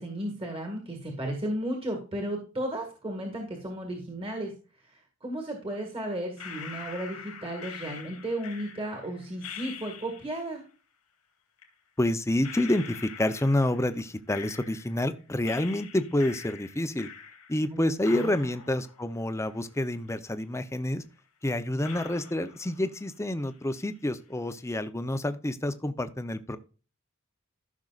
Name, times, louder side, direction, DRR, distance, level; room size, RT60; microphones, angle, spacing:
voice 1, 0.0-4.5 4.9-10.6 17.7-18.3, right 1 dB, 25° right, 2 dB, 1.9 m, -34 dB
sound 1, 6.4-10.5 11.6-11.7 12.4-15.1 15.4-17.7 18.0-20.1 20.4-20.5 21.2-21.3 21.8-23.1 23.4-24.0, left 7 dB, 90° left, 2.3 m, -45 dB
voice 2, 12.0-17.1 17.5-21.0 21.4-26.6, left 1 dB, 15° left, 11 dB, 0.6 m, -28 dB
14.5 x 6.3 x 2.4 m, 0.36 s
head